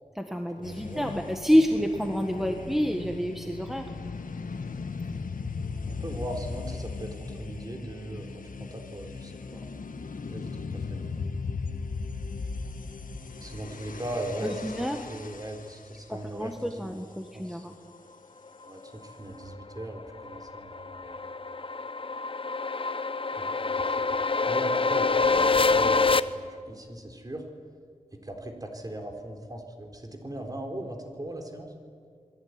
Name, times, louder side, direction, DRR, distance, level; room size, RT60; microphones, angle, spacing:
voice 1, 0.1-3.9 14.4-15.0 16.1-17.7, equal, ahead, 4 dB, 1.6 m, -28 dB
sound 1, 0.6-15.9, left 4 dB, 90° left, 1.5 m, -37 dB
voice 2, 0.7-1.1 5.9-9.6 10.3-11.0 13.4-14.6 14.8-16.9 17.3-17.6 18.6-21.2 23.4-23.5 23.8-27.4 28.2-31.7, right 1 dB, 30° right, 3 dB, 4.0 m, -39 dB
sound 2, 19.6-26.2, left 4 dB, 40° left, 0.8 m, -26 dB
28.5 x 21.5 x 9.7 m, 2.1 s
wide cardioid pair, 95°, 14 cm